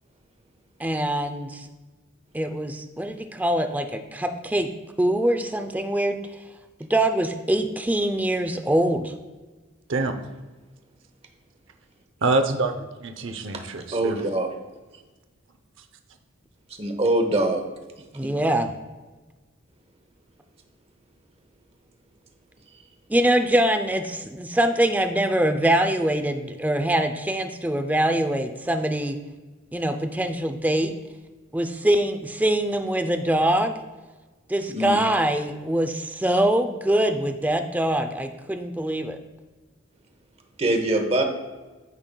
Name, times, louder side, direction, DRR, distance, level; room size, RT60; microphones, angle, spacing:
voice 1, 0.8-1.7 2.3-4.7 5.0-6.2 6.9-9.1 18.1-18.7 23.1-29.2 29.7-30.9 31.5-33.8 34.5-39.2, right 1 dB, 10° right, 7 dB, 0.5 m, -23 dB
voice 2, 12.2-14.2, right 3 dB, 65° right, 7 dB, 0.7 m, -25 dB
voice 3, 13.9-14.5 16.8-17.7 18.2-18.3 34.7-35.0 40.6-41.2, right 1 dB, 30° right, 5 dB, 1.0 m, -23 dB
14.0 x 5.5 x 2.3 m, 1.2 s
head